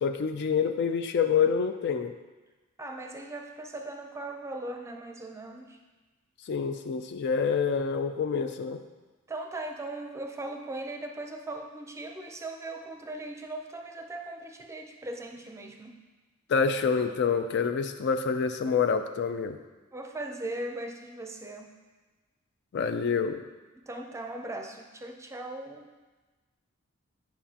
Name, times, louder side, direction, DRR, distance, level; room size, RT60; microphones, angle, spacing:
voice 1, 0.0-2.1 6.5-8.8 16.5-19.6 22.7-23.4, left 6 dB, 55° left, 8 dB, 0.4 m, -27 dB
voice 2, 2.8-5.8 9.3-16.0 19.9-21.7 23.9-25.9, right 2 dB, 15° right, 3 dB, 0.5 m, -39 dB
9.3 x 5.8 x 2.8 m, 1.2 s
head